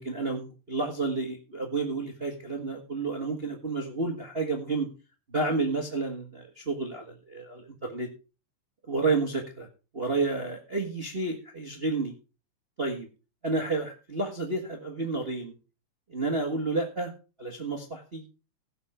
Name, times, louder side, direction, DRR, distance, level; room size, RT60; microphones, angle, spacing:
voice 1, 0.0-4.9 5.3-8.1 8.9-9.7 9.9-12.1 12.8-13.1 13.4-15.5 16.1-17.1 17.4-18.2, right 3 dB, 35° right, 3 dB, 0.9 m, -30 dB
17.0 x 5.7 x 4.9 m, 0.32 s
omnidirectional pair, 3.9 m